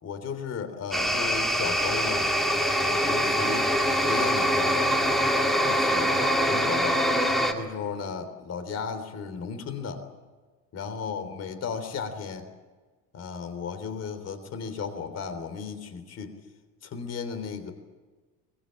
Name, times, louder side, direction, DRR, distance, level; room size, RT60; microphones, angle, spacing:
voice 1, 0.0-2.3 2.7-3.7 4.0-4.8 5.6-6.1 6.4-7.0 7.5-10.0 10.7-12.4 13.1-16.4 16.8-17.7, left 6 dB, 40° left, 9 dB, 3.5 m, -35 dB
sound 1, 0.9-7.5, equal, ahead, 2.1 m, -24 dB
23.0 x 21.0 x 8.8 m, 1.3 s
cardioid pair, 155°, 39 cm